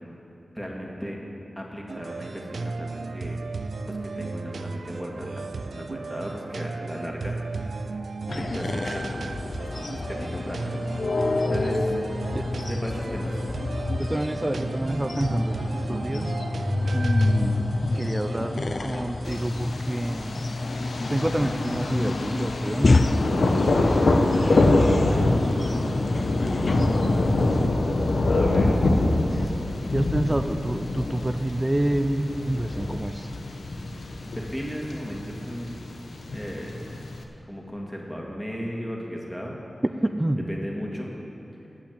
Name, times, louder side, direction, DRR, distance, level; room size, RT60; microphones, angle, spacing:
voice 1, 0.5-1.2 1.6-3.4 3.9-8.0 8.3-10.8 11.4-13.4 28.3-28.8 34.2-35.8 36.3-36.7 37.5-39.6 40.5-41.1, equal, 5° left, -2 dB, 2.2 m, -36 dB
sound 1, 1.9-19.5, right 3 dB, 80° right, 0.5 m, -35 dB
sound 2, 8.3-27.7, left 2 dB, 50° left, 0.4 m, -28 dB
voice 2, 14.0-16.4 16.9-17.7 17.9-20.5 21.1-24.0 24.9-25.7 26.1-26.9 27.2-27.7 28.6-29.5 29.9-33.3 40.0-40.5, right 1 dB, 20° right, 7 dB, 0.5 m, -29 dB
Thunder, 19.3-37.2, left 2 dB, 90° left, 1.0 m, -25 dB
16.5 x 6.0 x 8.3 m, 2.8 s
wide cardioid pair, 75°, 0 cm